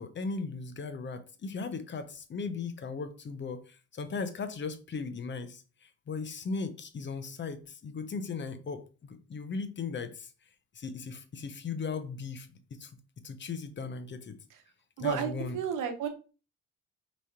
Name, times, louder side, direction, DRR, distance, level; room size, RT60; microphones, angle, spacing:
voice 1, 0.0-10.3 10.7-12.5 12.8-12.9 13.2-14.3 15.0-15.6, left 4 dB, 40° left, 0.7 m, -37 dB
voice 2, 15.0-16.1, right 8 dB, 90° right, 0.9 m, -32 dB
4.8 x 3.1 x 2.8 m
cardioid pair, 90°, 30 cm